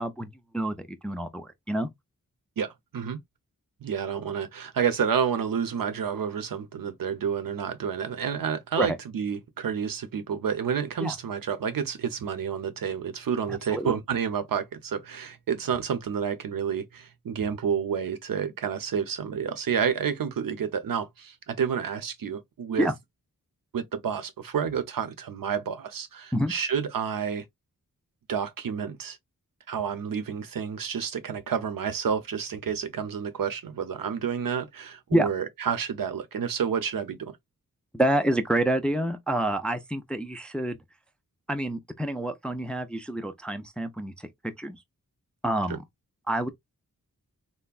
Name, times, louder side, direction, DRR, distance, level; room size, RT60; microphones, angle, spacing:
voice 1, 0.0-1.9 8.8-9.0 11.0-11.1 13.5-13.9 22.8-22.9 26.3-26.5 35.1-35.3 37.9-40.8 41.5-44.3 44.6-44.8 45.4-45.8 46.3-46.5, right 1 dB, 5° left, 0.3 m, -28 dB
voice 2, 2.6-3.2 3.8-22.9 23.7-27.4 28.3-29.2 29.7-37.3 45.7-45.8, right 7 dB, 75° right, 0.6 m, -29 dB
3.4 x 2.1 x 2.3 m
wide cardioid pair, 85°, 34 cm